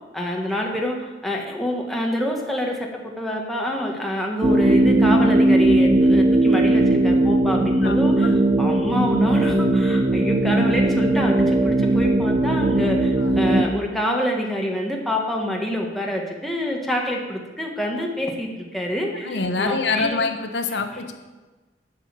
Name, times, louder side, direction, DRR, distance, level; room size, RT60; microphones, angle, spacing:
voice 1, 0.1-2.8 3.2-8.3 8.6-20.2 21.0-21.1, equal, ahead, -1 dB, 1.4 m, -26 dB
sound 1, 4.4-13.6, right 2 dB, 25° right, 0.5 m, -18 dB
voice 2, 7.8-8.3 13.2-13.4 19.2-21.1, left 3 dB, 75° left, 7 dB, 0.9 m, -26 dB
11.5 x 5.5 x 7.5 m, 1.2 s
head